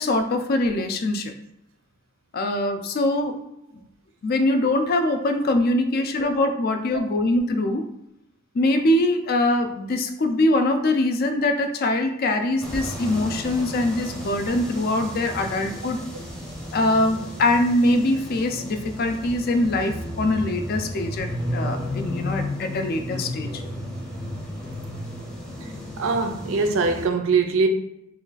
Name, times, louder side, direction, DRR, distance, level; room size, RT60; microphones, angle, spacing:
voice 1, 0.0-1.3 2.3-3.4 4.2-7.9 8.5-16.0 16.7-23.6, left 1 dB, 45° left, 7 dB, 0.3 m, -23 dB
sound 1, 12.6-27.1, left 1 dB, 5° left, 0.6 m, -33 dB
voice 2, 25.6-27.7, right 4 dB, 70° right, 5 dB, 0.5 m, -23 dB
3.1 x 2.3 x 3.9 m, 0.83 s
head